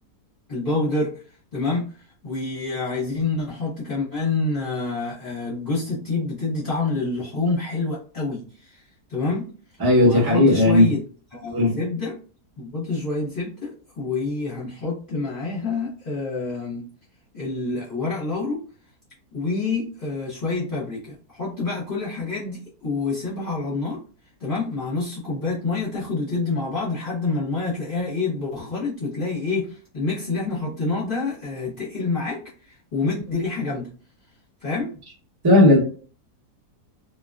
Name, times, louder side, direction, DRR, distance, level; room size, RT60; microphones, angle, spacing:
voice 1, 0.5-1.1 1.5-1.9 2.2-8.8 9.1-9.5 10.0-11.0 11.3-12.2 12.6-16.9 17.3-18.6 19.3-24.0 24.4-33.9 34.6-34.9, left 3 dB, 40° left, -7 dB, 0.9 m, -27 dB
voice 2, 9.8-10.9 11.5-11.8 35.4-35.8, left 1 dB, 25° right, -5 dB, 0.5 m, -15 dB
2.6 x 2.3 x 2.3 m, 0.40 s
omnidirectional pair, 1.7 m